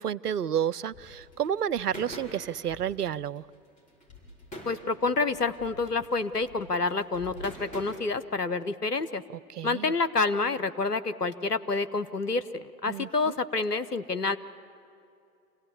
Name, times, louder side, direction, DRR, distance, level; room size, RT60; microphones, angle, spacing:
voice 1, 0.0-3.5 9.5-9.9 12.9-13.4, right 9 dB, 80° right, 19 dB, 0.6 m, -30 dB
sound 1, 0.9-7.8, equal, 15° left, 5.4 m, -45 dB
voice 2, 4.7-9.2 9.6-14.4, left 3 dB, 90° left, 12 dB, 0.9 m, -28 dB
26.5 x 16.5 x 8.3 m, 2.5 s
figure-of-eight pair, 105°, 46 cm